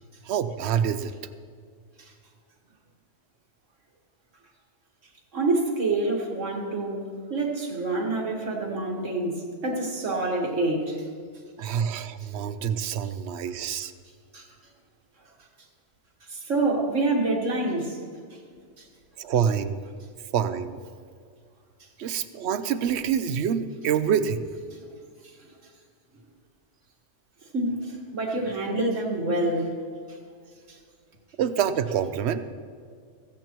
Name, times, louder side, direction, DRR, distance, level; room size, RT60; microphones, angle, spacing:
voice 1, 0.2-1.1 11.6-13.9 19.2-19.8 20.3-20.8 22.0-24.5 31.4-32.4, right 8 dB, 65° right, 12 dB, 0.9 m, -26 dB
voice 2, 5.3-9.4 9.6-11.0 14.3-14.5 16.3-18.0 27.5-29.7, right 2 dB, 90° right, 0 dB, 2.1 m, -27 dB
16.0 x 15.0 x 3.0 m, 2.1 s
omnidirectional pair, 1.2 m